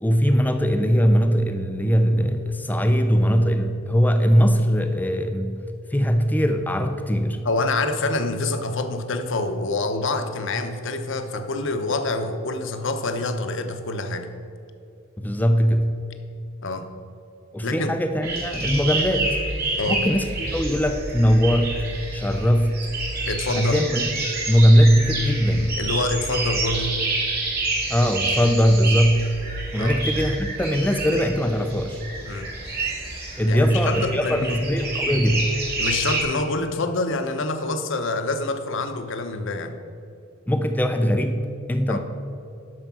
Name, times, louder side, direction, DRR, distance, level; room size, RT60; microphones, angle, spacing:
voice 1, 0.0-5.6 5.9-7.4 15.2-15.9 17.5-19.4 19.9-21.8 22.1-22.8 23.6-24.0 24.5-25.8 27.9-29.4 29.7-32.0 33.4-35.5 40.5-41.4 41.7-42.0, equal, 10° left, 6 dB, 0.5 m, -20 dB
voice 2, 7.4-14.3 16.6-16.9 17.6-17.9 19.7-20.0 23.3-23.8 25.8-27.0 29.7-30.0 32.2-32.5 33.5-34.6 35.8-39.8 41.9-42.0, left 2 dB, 65° left, 7 dB, 0.9 m, -26 dB
sound 1, 18.2-36.2, right 2 dB, 50° right, 2.4 m, -28 dB
11.0 x 6.5 x 6.0 m, 2.6 s
head